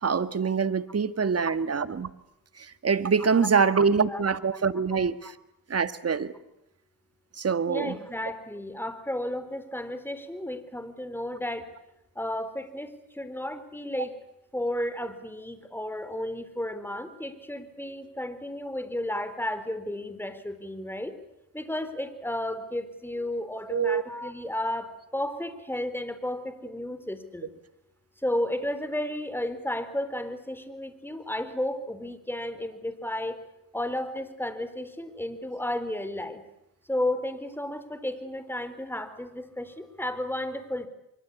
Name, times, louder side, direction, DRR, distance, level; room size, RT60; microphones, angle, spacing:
voice 1, 0.0-2.1 2.6-5.3 5.7-6.3 7.3-8.0 23.7-24.0, right 5 dB, 30° right, 12 dB, 1.9 m, -25 dB
voice 2, 7.6-11.7 12.2-14.2 14.5-21.2 21.5-27.5 28.2-33.4 33.7-36.4 36.9-40.9, left 1 dB, 5° left, 11 dB, 4.1 m, -33 dB
24.0 x 23.5 x 8.5 m, 0.82 s
supercardioid pair, 65°, 45 cm